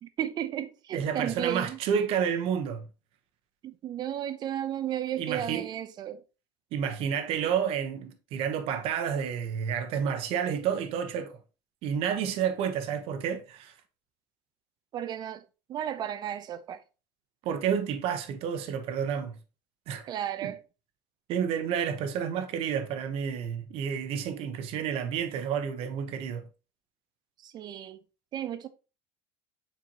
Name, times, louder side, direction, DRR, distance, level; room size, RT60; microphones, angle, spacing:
voice 1, 0.0-1.8 3.6-6.2 14.9-15.4 15.7-16.8 20.1-20.6 27.4-28.0 28.3-28.7, right 10 dB, 35° right, 0.6 m, -34 dB
voice 2, 0.9-2.9 5.2-5.7 6.7-11.4 11.8-13.7 17.4-19.4 19.9-20.1 20.4-20.5 21.3-26.5, right 8 dB, 55° right, 1.0 m, -30 dB
7.1 x 4.5 x 2.9 m
cardioid pair, 145°, 12 cm